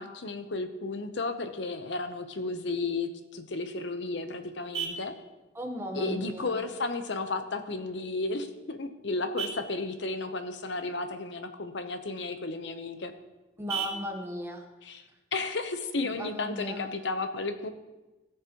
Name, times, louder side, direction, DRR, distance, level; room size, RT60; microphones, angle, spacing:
voice 1, 0.0-5.1 5.9-13.1 14.8-15.0 15.3-17.7, left 3 dB, 65° left, 8 dB, 0.8 m, -33 dB
Vehicle horn car horn honking, 3.5-16.5, right 6 dB, 55° right, 2.5 m, -44 dB
voice 2, 5.5-6.6 13.6-14.6 16.0-16.9, equal, 15° right, 2 dB, 1.1 m, -36 dB
17.0 x 6.6 x 3.0 m, 1.1 s
head